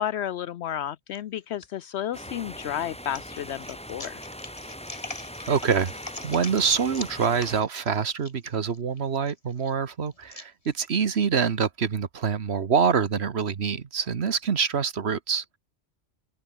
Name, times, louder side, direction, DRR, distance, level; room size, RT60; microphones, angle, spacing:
voice 1, 0.0-4.2, left 10 dB, 75° left, 0.9 m, -32 dB
sound 1, 1.1-1.7 2.2-11.2, left 2 dB, 30° left, 2.0 m, -43 dB
sound 2, 2.1-7.6, equal, 5° left, 5.3 m, -41 dB
voice 2, 5.5-5.9 6.2-15.4, right 6 dB, 70° right, 1.4 m, -25 dB
open air
omnidirectional pair, 1.2 m